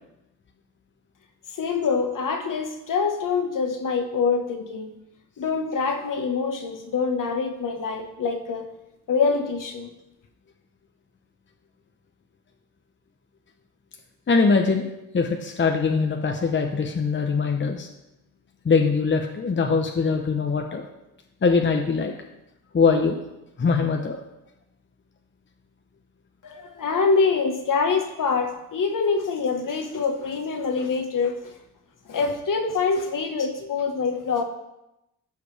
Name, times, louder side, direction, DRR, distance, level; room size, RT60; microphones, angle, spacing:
voice 1, 1.6-4.9 5.4-8.7 9.1-9.9 26.4-31.5 32.1-34.4, left 5 dB, 55° left, 4 dB, 1.3 m, -25 dB
voice 2, 14.3-14.9 15.1-17.9 18.6-20.9 21.4-22.1 22.7-23.2 23.6-24.2 26.9-27.0, left 4 dB, 30° left, 3 dB, 0.9 m, -22 dB
14.5 x 5.0 x 3.4 m, 0.91 s
cardioid pair, 80°, 38 cm